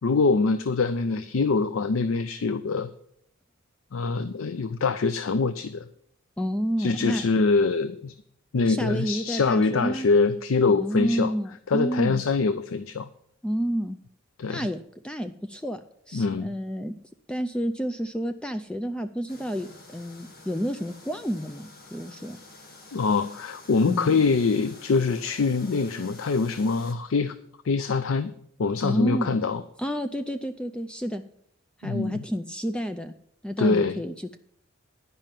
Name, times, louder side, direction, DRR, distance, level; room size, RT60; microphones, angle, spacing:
voice 1, 0.0-2.9 3.9-5.8 6.8-8.1 8.5-11.3 11.7-13.1 14.4-14.7 16.1-16.5 22.9-27.3 27.6-28.3 28.6-29.6 31.8-32.2 33.6-34.0, left 4 dB, 70° left, 12 dB, 0.5 m, -24 dB
voice 2, 6.4-7.3 8.7-10.1 10.7-12.2 13.4-14.0 14.5-16.9 17.3-22.4 23.9-24.1 28.8-29.4 29.8-31.2 31.8-33.1 33.4-34.4, equal, 5° left, 8 dB, 0.4 m, -30 dB
sound 1, 19.3-26.9, left 2 dB, 45° left, 1.7 m, -48 dB
10.5 x 5.4 x 7.5 m, 0.68 s
head